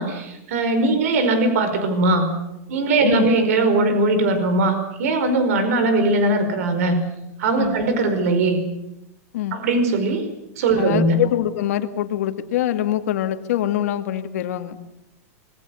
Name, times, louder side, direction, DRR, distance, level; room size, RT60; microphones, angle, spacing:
voice 1, 0.0-2.3 2.7-7.0 7.4-8.6 9.5-10.3 10.6-11.2, right 2 dB, 70° right, 9 dB, 5.0 m, -20 dB
voice 2, 10.8-14.8, left 12 dB, 70° left, 7 dB, 2.1 m, -24 dB
25.0 x 22.5 x 7.1 m, 0.88 s
supercardioid pair, 160°, 8 cm